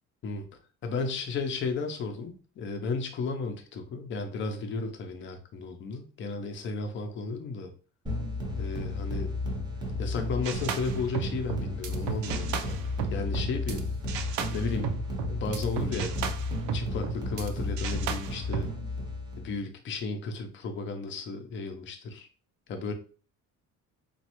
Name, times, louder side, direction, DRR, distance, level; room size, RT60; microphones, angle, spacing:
voice 1, 0.8-7.7 8.6-9.3 10.0-12.8 13.1-13.8 14.5-15.0 15.3-16.2 16.7-18.7 19.4-22.3 22.7-22.9, left 4 dB, 35° left, 5 dB, 0.5 m, -34 dB
sound 1, 8.1-19.6, left 2 dB, 15° right, 0.7 m, -33 dB
sound 2, 10.4-13.8 14.1-17.5 17.8-18.7, right 7 dB, 65° right, 0.5 m, -34 dB
3.1 x 2.3 x 2.9 m, 0.38 s
cardioid pair, 145°, 32 cm